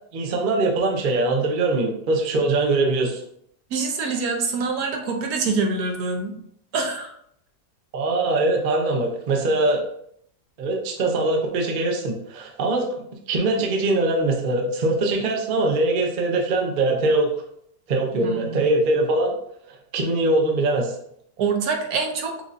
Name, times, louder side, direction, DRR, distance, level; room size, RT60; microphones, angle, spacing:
voice 1, 0.1-3.2 7.9-9.8 10.6-12.9 13.3-17.4 17.9-19.3 19.9-20.9, right 2 dB, 50° right, 1 dB, 0.6 m, -22 dB
voice 2, 3.7-6.4 6.7-7.1 18.2-18.7 21.4-22.4, right 4 dB, 70° right, 3 dB, 1.2 m, -25 dB
6.1 x 2.6 x 2.5 m, 0.70 s
omnidirectional pair, 1.7 m